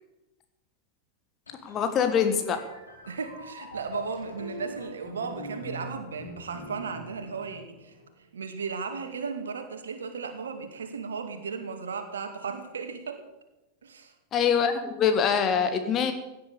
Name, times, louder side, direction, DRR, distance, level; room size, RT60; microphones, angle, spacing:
sound 1, 1.5-8.2, left 1 dB, 75° left, 4.3 m, -43 dB
voice 1, 1.6-2.6 14.3-16.1, left 7 dB, 30° left, 8 dB, 1.5 m, -24 dB
voice 2, 3.1-7.9 8.3-13.2 13.8-14.1, right 5 dB, 70° right, 6 dB, 2.3 m, -35 dB
17.0 x 10.5 x 7.0 m, 0.98 s
figure-of-eight pair, 90°, 0 cm